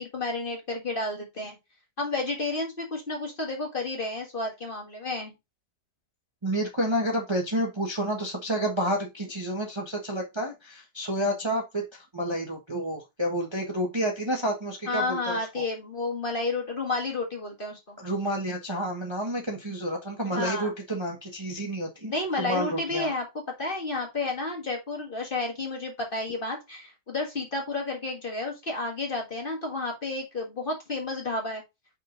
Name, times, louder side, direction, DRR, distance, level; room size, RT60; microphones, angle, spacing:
voice 1, 0.0-1.6 2.0-5.3 14.9-18.0 20.2-20.7 22.1-23.3 23.6-31.6, left 3 dB, 30° left, 0 dB, 1.9 m, -31 dB
voice 2, 6.4-15.6 18.0-22.1 22.4-23.1, right 1 dB, 20° right, 0 dB, 1.2 m, -30 dB
5.8 x 4.8 x 3.9 m, 0.23 s
omnidirectional pair, 1.8 m